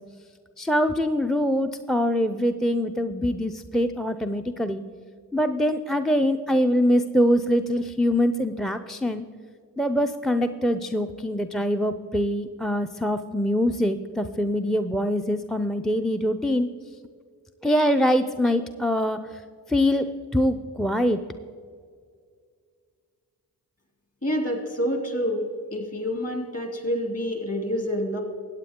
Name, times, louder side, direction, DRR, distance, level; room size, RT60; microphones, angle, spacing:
voice 1, 0.6-4.8 5.3-9.2 9.8-16.7 17.6-19.2 19.7-20.0 20.3-21.2, equal, ahead, 10 dB, 0.5 m, -23 dB
voice 2, 24.2-25.4 25.7-28.2, equal, 35° left, 3 dB, 2.8 m, -27 dB
14.0 x 8.8 x 3.7 m, 2.1 s
supercardioid pair, 40°, 40 cm